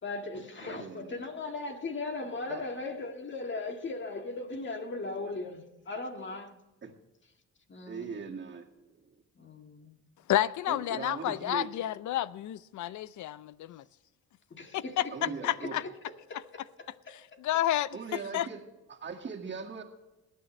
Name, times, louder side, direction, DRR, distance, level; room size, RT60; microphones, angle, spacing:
voice 1, 0.0-6.6 7.7-8.2 9.3-10.0 14.5-15.3 15.6-15.9 16.3-17.4, left 3 dB, 40° left, 1.8 m, -38 dB
voice 2, 0.6-1.1 2.5-2.6 6.8-6.9 7.9-9.2 10.7-11.7 15.1-15.8 17.9-18.6 18.9-19.8, right 5 dB, 40° right, 2.1 m, -40 dB
voice 3, 10.3-13.8 14.7-15.8 17.1-18.5, left 13 dB, 75° left, 0.6 m, -31 dB
20.0 x 9.3 x 3.2 m
cardioid pair, 90°, 30 cm